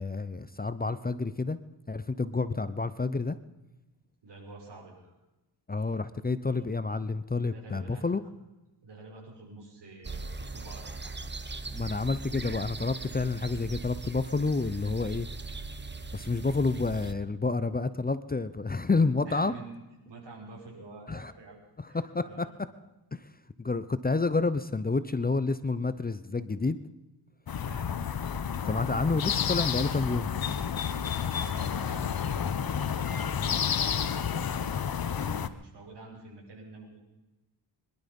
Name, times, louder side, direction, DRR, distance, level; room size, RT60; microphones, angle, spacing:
voice 1, 0.0-1.6 1.9-3.4 5.7-8.2 11.7-15.3 16.1-19.5 21.1-21.3 21.8-22.7 23.1-23.2 23.6-26.8 28.6-30.3, left 3 dB, 20° left, 13 dB, 0.7 m, -29 dB
voice 2, 4.2-5.1 7.4-8.0 8.8-11.2 19.3-19.8 20.1-21.6 21.9-22.5 27.5-27.9 28.6-28.7 31.5-33.2 33.6-37.0, right 3 dB, 70° right, 0 dB, 5.8 m, -48 dB
sound 1, 10.0-17.1, right 3 dB, 25° right, 1.3 m, -39 dB
sound 2, 27.5-35.5, left 7 dB, 55° left, 1.0 m, -30 dB
23.0 x 12.0 x 5.3 m, 1.0 s
cardioid pair, 85°, 43 cm